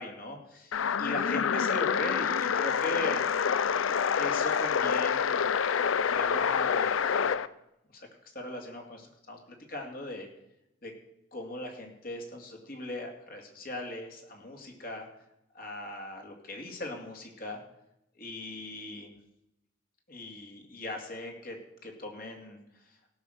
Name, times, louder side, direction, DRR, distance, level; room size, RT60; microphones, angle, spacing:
voice 1, 0.0-3.2 4.1-5.6 5.9-7.4 7.9-8.1 8.3-9.4 9.7-10.3 10.8-10.9 11.3-15.1 15.5-17.6 18.2-19.1 20.1-22.6, left 1 dB, 45° left, 2 dB, 2.4 m, -39 dB
sound 1, 0.7-7.5, left 7 dB, 85° left, 0.5 m, -27 dB
17.0 x 6.1 x 6.6 m, 0.85 s
head